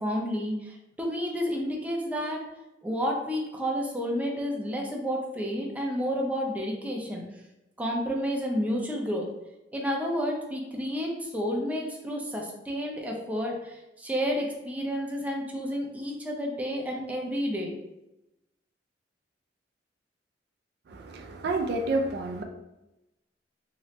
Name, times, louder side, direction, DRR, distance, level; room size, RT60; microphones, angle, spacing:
voice 1, 0.0-2.4 2.8-7.2 7.8-9.3 9.7-17.7, equal, 10° right, -1 dB, 0.5 m, -30 dB
voice 2, 20.9-22.4, right 2 dB, 60° right, 4 dB, 0.4 m, -29 dB
2.9 x 2.8 x 3.1 m, 0.95 s
head